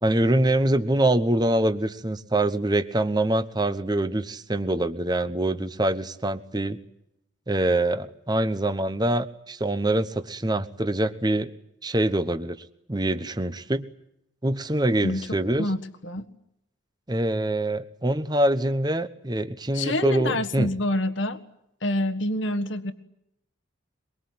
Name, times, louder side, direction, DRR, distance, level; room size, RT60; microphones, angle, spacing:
voice 1, 0.0-6.8 7.5-11.5 11.8-12.6 12.9-13.9 14.4-15.7 17.1-20.7, right 1 dB, 20° right, 11 dB, 1.1 m, -24 dB
voice 2, 19.7-21.4 21.8-22.9, left 1 dB, 65° left, 8 dB, 1.6 m, -26 dB
23.0 x 23.0 x 9.5 m, 0.80 s
head